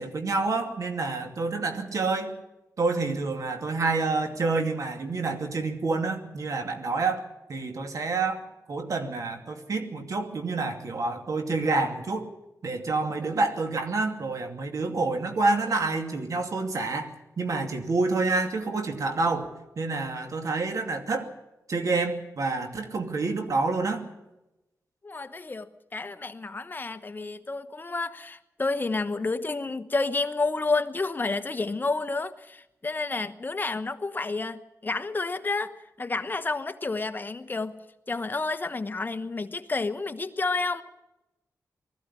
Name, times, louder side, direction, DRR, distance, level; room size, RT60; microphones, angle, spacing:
voice 1, 0.0-2.3 2.8-7.2 7.5-12.3 12.6-17.1 17.4-19.5 19.8-21.3 21.7-24.0, right 3 dB, 65° right, 5 dB, 2.6 m, -28 dB
voice 2, 25.0-37.8 38.1-40.8, left 3 dB, 30° left, 10 dB, 1.1 m, -30 dB
20.0 x 14.5 x 9.9 m, 0.96 s
cardioid pair, 85°, 6 cm